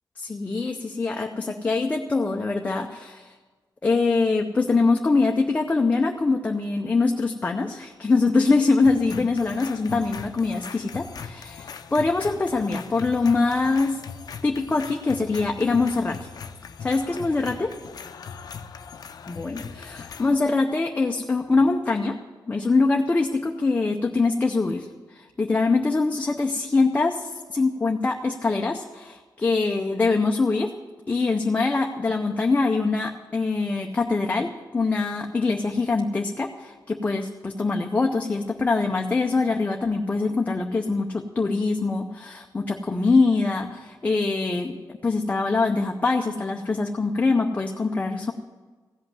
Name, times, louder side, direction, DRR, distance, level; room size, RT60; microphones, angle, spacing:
voice 1, 0.2-3.3 3.8-14.0 14.4-16.3 16.8-17.7 19.3-22.2 22.5-24.9 25.1-30.7 31.1-44.8 45.0-48.3, left 3 dB, 20° left, 2 dB, 0.6 m, -23 dB
sound 1, 8.8-20.4, left 6 dB, 60° left, 0.6 m, -40 dB
15.5 x 5.7 x 9.3 m, 1.3 s
wide cardioid pair, 175°, 7 cm